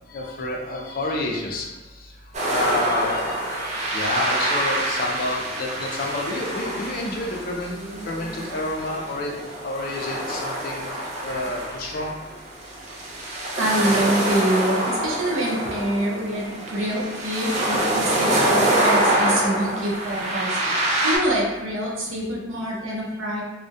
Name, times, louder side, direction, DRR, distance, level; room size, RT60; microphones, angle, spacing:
voice 1, 0.0-1.7 2.5-7.8 8.1-9.4 9.6-10.9 11.2-12.1, left 2 dB, 50° left, -1 dB, 0.4 m, -29 dB
sound 1, 2.3-21.2, right 1 dB, 35° right, 0.4 m, -26 dB
voice 2, 13.6-23.4, right 1 dB, 85° right, -3 dB, 0.6 m, -25 dB
2.2 x 2.1 x 2.6 m, 1.1 s
head